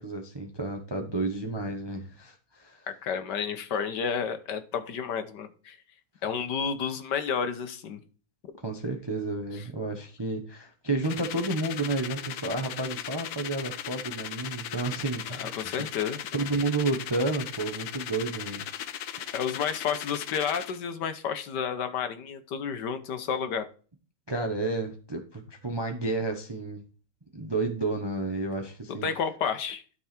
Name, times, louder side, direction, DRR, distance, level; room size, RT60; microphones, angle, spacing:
voice 1, 0.0-2.9 8.6-15.9 16.3-18.6 19.2-19.4 24.3-26.8 27.3-29.1, right 2 dB, 20° right, 0.7 m, -31 dB
voice 2, 2.9-5.8 6.2-8.0 15.3-16.2 19.3-23.7 29.0-29.8, left 7 dB, 65° left, 1.5 m, -31 dB
sound 1, 11.0-20.8, left 10 dB, 90° left, 1.5 m, -38 dB
12.5 x 4.7 x 4.3 m
omnidirectional pair, 2.1 m